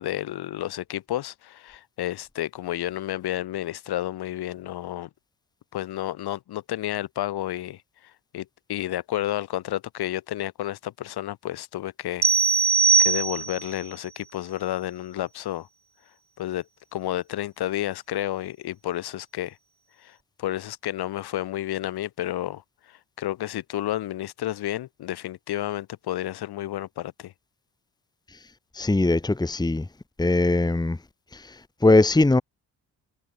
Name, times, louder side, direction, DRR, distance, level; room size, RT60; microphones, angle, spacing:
voice 1, 0.0-5.1 5.7-7.8 8.3-12.3 13.0-15.7 16.4-16.6 16.9-19.6 20.0-22.6 23.2-27.3, left 13 dB, 80° left, 5.9 m, -31 dB
sound 1, 12.2-13.7, right 5 dB, 15° right, 0.4 m, -20 dB
voice 2, 28.7-29.9 30.2-31.0 31.3-32.4, left 2 dB, 10° left, 1.2 m, -21 dB
supercardioid pair, 60°, 38 cm